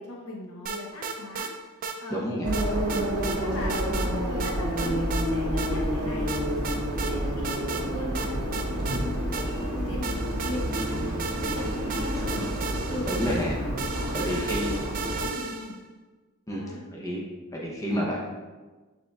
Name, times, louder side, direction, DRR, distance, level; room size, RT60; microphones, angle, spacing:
voice 1, 0.0-1.5 2.0-2.2 2.7-3.0 3.4-6.3 6.7-9.0 9.5-12.3 12.9-13.1 13.9-14.6 15.3-15.7 16.5-16.8, left 1 dB, 65° left, -2 dB, 0.9 m, -38 dB
sound 1, 0.7-1.5 1.8-2.0 2.5-3.4 3.7-4.1 4.4-5.3 5.6-5.7 6.3-7.1 7.4-7.9 8.2-9.7 10.0-15.8, right 5 dB, 40° right, 0.4 m, -35 dB
voice 2, 2.1-2.5 12.1-12.4 13.0-13.6 14.1-14.8 16.5-17.2 17.5-18.2, equal, 15° left, -4 dB, 0.7 m, -30 dB
sound 2, 2.4-15.3, equal, 75° right, 0.9 m, -29 dB
sound 3, 5.7-11.1, equal, 85° left, 1.4 m, -45 dB
6.3 x 3.6 x 2.3 m, 1.3 s
head